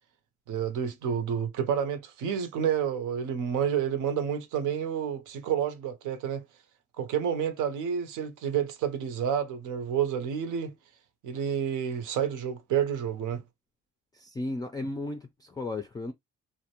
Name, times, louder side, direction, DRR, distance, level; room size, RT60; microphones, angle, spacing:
voice 1, 0.5-6.4 7.0-10.7 11.2-13.4, right 8 dB, 85° right, 0.7 m, -29 dB
voice 2, 14.1-16.1, left 2 dB, 15° left, 0.3 m, -35 dB
2.5 x 2.1 x 2.8 m
cardioid pair, 90°, 30 cm